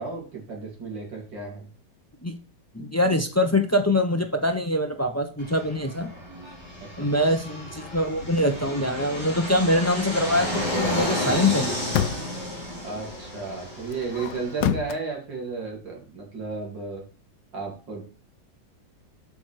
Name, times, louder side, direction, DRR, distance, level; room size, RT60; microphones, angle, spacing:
voice 1, 0.0-1.7 6.8-7.1 12.8-17.0 17.5-18.0, right 4 dB, 80° right, 0 dB, 3.8 m, -33 dB
voice 2, 2.7-6.1 7.0-11.8, left 1 dB, 25° left, 6 dB, 0.3 m, -24 dB
Fixed-wing aircraft airplane, 5.4-14.6, equal, 15° right, 3.2 m, -32 dB
sound 1, 8.1-8.5 11.4-12.5 13.9-15.0, left 9 dB, 75° left, 1.4 m, -29 dB
8.2 x 6.1 x 5.0 m, 0.36 s
omnidirectional pair, 1.9 m